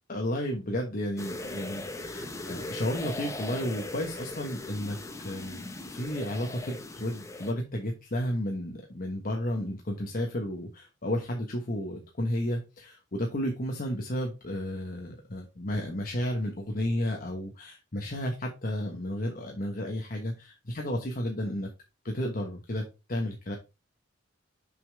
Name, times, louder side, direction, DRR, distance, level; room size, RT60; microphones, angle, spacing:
voice 1, 0.1-21.7 22.0-23.6, left 1 dB, 45° left, 2 dB, 1.2 m, -32 dB
sound 1, 1.2-7.5, left 2 dB, 15° left, 0.8 m, -39 dB
6.8 x 5.5 x 3.4 m, 0.27 s
head